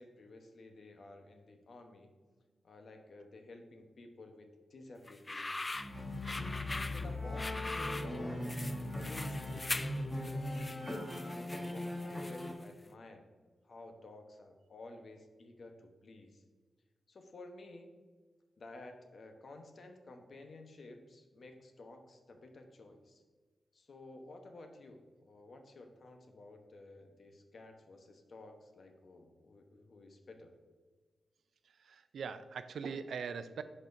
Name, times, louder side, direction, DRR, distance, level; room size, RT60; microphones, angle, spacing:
voice 1, 0.0-2.1 2.6-6.0 6.9-8.5 9.0-10.6 11.2-13.3 13.6-16.4 17.1-17.9 18.6-23.2 23.7-30.5, left 2 dB, 65° left, 5 dB, 0.9 m, -53 dB
sound 1, 5.1-12.6, left 2 dB, 30° left, 0.3 m, -42 dB
sound 2, 5.7-12.5, left 1 dB, 10° left, 1.4 m, -39 dB
voice 2, 31.8-33.6, right 6 dB, 85° right, 12 dB, 0.3 m, -42 dB
10.5 x 4.2 x 2.6 m, 1.4 s
cardioid pair, 55°, 0 cm